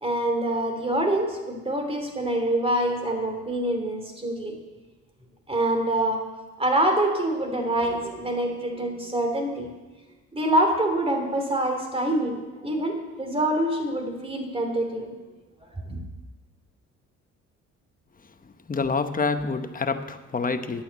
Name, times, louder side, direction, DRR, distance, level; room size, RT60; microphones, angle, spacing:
voice 1, 0.0-4.6 5.5-6.2 6.6-9.7 10.3-15.1 15.6-16.0, right 1 dB, 20° right, 4 dB, 3.1 m, -25 dB
voice 2, 18.7-20.8, left 4 dB, 30° left, 9 dB, 1.0 m, -27 dB
11.5 x 8.8 x 8.2 m, 1.2 s
cardioid pair, 90°, 30 cm